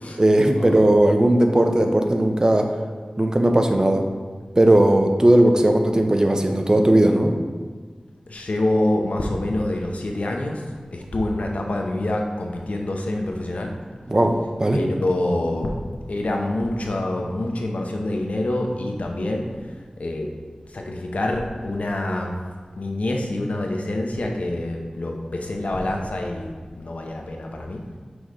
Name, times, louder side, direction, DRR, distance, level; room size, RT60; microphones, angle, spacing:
voice 1, 0.2-2.7 3.2-4.1 4.6-7.4 14.1-14.8, right 1 dB, 30° right, 4 dB, 0.6 m, -17 dB
voice 2, 8.3-10.6 10.9-13.7 14.7-15.7 16.1-20.3 20.7-22.3 22.8-27.8, left 1 dB, 70° left, 1 dB, 0.8 m, -26 dB
6.2 x 3.1 x 5.0 m, 1.5 s
wide cardioid pair, 65°, 2 cm